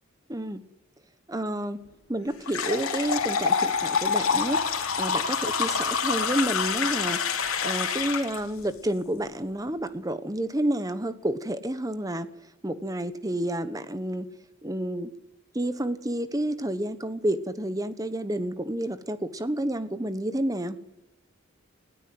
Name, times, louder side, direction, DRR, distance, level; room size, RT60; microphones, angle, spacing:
voice 1, 0.3-0.6 1.3-1.8 2.1-4.6 5.0-12.3 12.6-14.3 14.6-15.1 15.5-20.8, right 1 dB, 15° right, 12 dB, 1.1 m, -30 dB
sound 1, 2.5-8.4, left 6 dB, 85° left, 2.6 m, -26 dB
20.5 x 17.0 x 7.8 m, 0.93 s
head